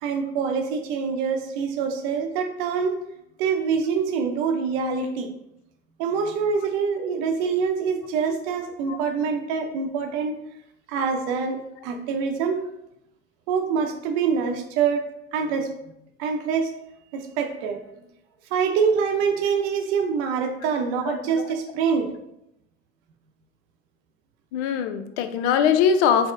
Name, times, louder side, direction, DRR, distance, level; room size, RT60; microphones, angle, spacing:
voice 1, 0.0-3.0 3.4-5.3 6.0-10.4 10.9-12.6 13.5-15.7 16.2-16.7 17.1-17.8 18.5-22.1, right 6 dB, 65° right, 5 dB, 0.6 m, -25 dB
voice 2, 24.5-26.3, left 7 dB, 70° left, 9 dB, 0.5 m, -21 dB
4.4 x 2.0 x 2.5 m, 0.82 s
hypercardioid pair, 80°, 35 cm